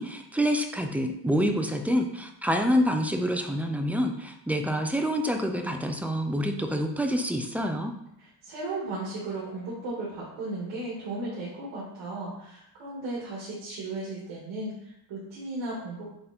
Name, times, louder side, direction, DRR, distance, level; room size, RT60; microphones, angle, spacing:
voice 1, 0.0-7.9, equal, 5° right, 4 dB, 0.4 m, -27 dB
voice 2, 8.2-16.1, right 2 dB, 80° right, -6 dB, 2.4 m, -35 dB
7.8 x 3.9 x 4.3 m, 0.79 s
cardioid pair, 160°, 44 cm